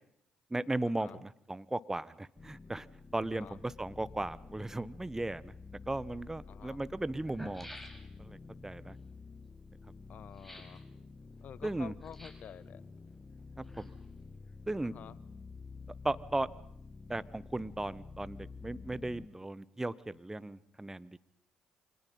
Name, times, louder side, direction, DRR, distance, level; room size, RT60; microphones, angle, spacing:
voice 1, 0.5-2.9 3.1-5.5 5.9-7.7 8.2-8.4 8.6-8.9 11.6-11.9 13.6-13.9 14.7-14.9 16.0-16.5 17.1-21.2, right 2 dB, 15° right, 18 dB, 1.2 m, -36 dB
sound 1, 2.4-19.3, left 4 dB, 30° left, 1.5 m, -50 dB
sound 2, 5.9-6.0 6.8-6.9 7.1-8.4 10.3-10.8 12.0-12.6 13.4-14.2 14.5-14.6, equal, 5° left, 6.3 m, -50 dB
voice 2, 6.5-6.8 10.1-10.8 11.4-12.8 14.9-15.1, left 9 dB, 55° left, 20 dB, 1.1 m, -49 dB
29.0 x 26.0 x 5.6 m, 0.70 s
hypercardioid pair, 45°, 3 cm